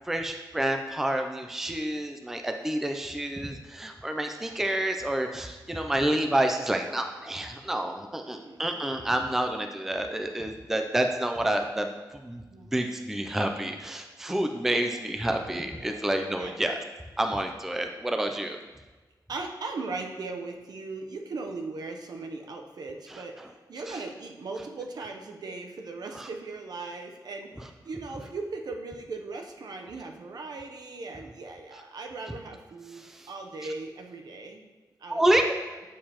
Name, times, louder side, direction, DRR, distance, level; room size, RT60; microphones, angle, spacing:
voice 1, 0.1-11.9 12.2-12.4 12.7-16.7 17.2-18.6 23.1-23.2 23.9-24.0 26.1-26.3 33.0-33.3 35.1-35.4, right 1 dB, 5° right, 5 dB, 0.4 m, -28 dB
voice 2, 3.0-3.6 3.8-3.9 4.3-4.5 5.7-6.2 8.0-9.2 12.5-12.9 14.7-14.9 15.7-16.0 16.4-16.5 19.3-34.6 35.0-35.2, right 3 dB, 65° right, 3 dB, 0.7 m, -39 dB
7.3 x 6.5 x 2.9 m, 1.3 s
wide cardioid pair, 170°, 7 cm